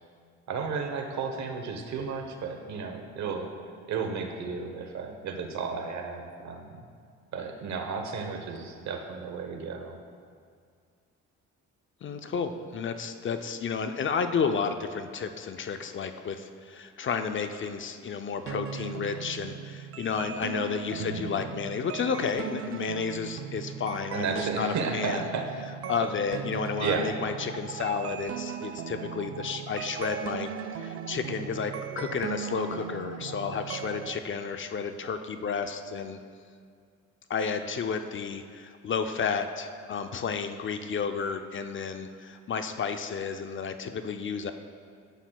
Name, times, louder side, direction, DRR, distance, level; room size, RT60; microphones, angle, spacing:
voice 1, 0.5-3.5 3.9-6.9 7.3-10.0 21.0-21.3 24.1-25.7 26.8-27.1, right 5 dB, 65° right, 4 dB, 1.0 m, -33 dB
voice 2, 12.0-25.3 25.9-30.5 30.8-36.2 37.3-44.5, left 6 dB, 40° left, 8 dB, 0.5 m, -32 dB
sound 1, 18.5-34.2, right 8 dB, 50° right, 0.5 m, -38 dB
11.5 x 7.8 x 2.3 m, 2.1 s
cardioid pair, 90°, 30 cm